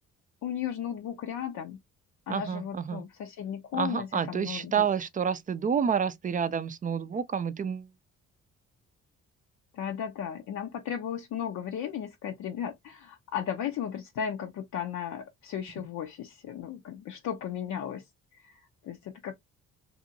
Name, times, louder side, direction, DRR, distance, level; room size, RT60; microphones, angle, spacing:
voice 1, 0.4-1.8 2.3-4.9 9.7-18.1 18.3-19.3, left 9 dB, 70° left, 0.6 m, -35 dB
voice 2, 2.3-3.0 3.7-7.9 15.8-15.9, right 7 dB, 30° right, 0.4 m, -29 dB
2.8 x 2.6 x 2.6 m
cardioid pair, 90°, 30 cm